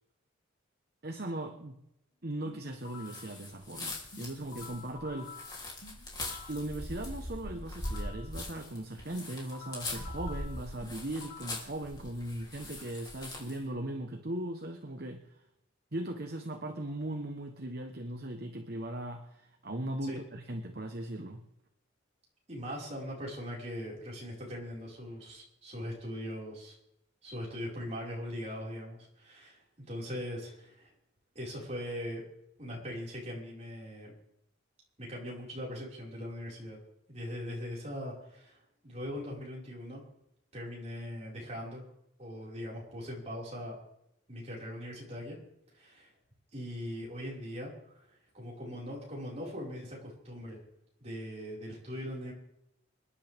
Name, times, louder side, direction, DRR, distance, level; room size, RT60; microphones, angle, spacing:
voice 1, 1.0-1.8 2.2-5.7 6.5-15.4 15.9-21.4, right 1 dB, 50° right, 4 dB, 1.2 m, -38 dB
sound 1, 2.5-3.3 4.1-6.7 7.5-8.3 9.1-11.7, left 5 dB, 70° left, 2.2 m, -50 dB
sound 2, 3.0-13.6, left 1 dB, 20° left, 3.3 m, -41 dB
voice 2, 22.5-26.7 27.2-30.9 31.4-32.2 32.6-34.1 35.0-36.8 37.1-40.0 40.5-41.8 42.2-43.8 44.3-45.4 45.7-46.1 46.5-50.6 51.0-52.3, equal, 35° right, -4 dB, 5.4 m, -40 dB
27.5 x 10.5 x 3.6 m, 0.80 s
head